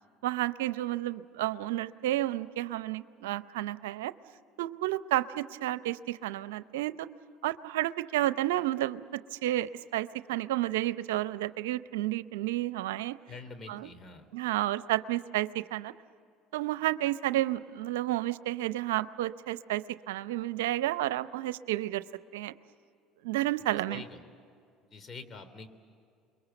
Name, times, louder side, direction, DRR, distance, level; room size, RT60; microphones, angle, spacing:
voice 1, 0.2-4.1 4.6-7.1 7.4-13.2 13.7-13.9 14.3-15.9 16.5-22.0 22.3-22.5 23.2-24.0, right 15 dB, 90° right, 14 dB, 0.6 m, -31 dB
voice 2, 13.3-14.3 23.7-24.3 24.9-25.7, left 4 dB, 35° left, 9 dB, 3.1 m, -46 dB
29.0 x 22.5 x 7.9 m, 2.4 s
supercardioid pair, 85°, 0 cm